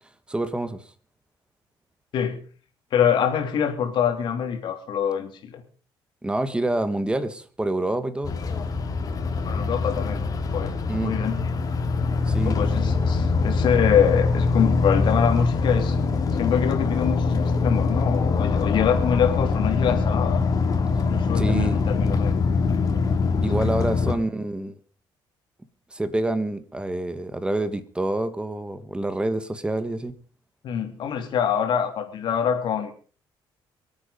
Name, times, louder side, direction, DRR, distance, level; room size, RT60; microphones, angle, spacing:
voice 1, 0.3-0.8 6.2-8.3 10.9-11.2 12.3-12.6 21.3-21.8 23.4-24.8 25.9-30.1, right 2 dB, 10° right, 11 dB, 1.7 m, -27 dB
voice 2, 2.9-5.6 9.4-11.4 12.4-16.0 16.3-20.4 21.1-22.4 23.6-23.7 24.1-24.2 30.6-32.9, left 8 dB, 65° left, 4 dB, 3.3 m, -25 dB
sound 1, 8.2-24.1, left 4 dB, 45° left, 3.0 m, -23 dB
24.0 x 8.9 x 5.2 m, 0.41 s
cardioid pair, 120°, 9 cm